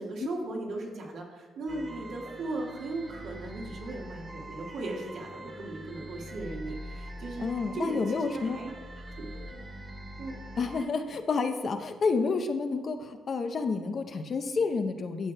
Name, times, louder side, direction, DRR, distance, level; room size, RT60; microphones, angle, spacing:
voice 1, 0.0-8.7 9.2-9.3 10.2-10.4, right 2 dB, 70° right, -1 dB, 1.6 m, -37 dB
sound 1, 1.7-10.8, equal, 35° right, 1.1 m, -43 dB
voice 2, 7.4-8.6 10.6-15.3, left 4 dB, 50° left, 7 dB, 0.6 m, -29 dB
12.5 x 6.3 x 2.2 m, 1.4 s
cardioid pair, 90°, 0 cm